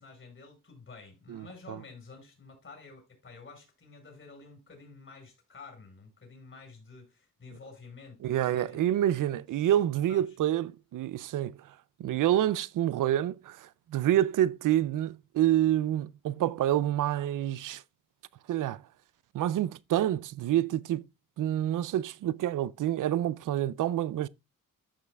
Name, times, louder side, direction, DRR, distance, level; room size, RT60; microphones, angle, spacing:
voice 1, 0.0-8.8 9.5-9.7 10.1-10.4, left 4 dB, 40° left, 5.1 m, -50 dB
voice 2, 1.3-1.8 8.2-11.6 12.0-17.8 18.5-18.8 19.3-21.1 21.4-24.3, right 12 dB, 75° right, 0.5 m, -28 dB
14.0 x 5.6 x 2.3 m
cardioid pair, 95°, 32 cm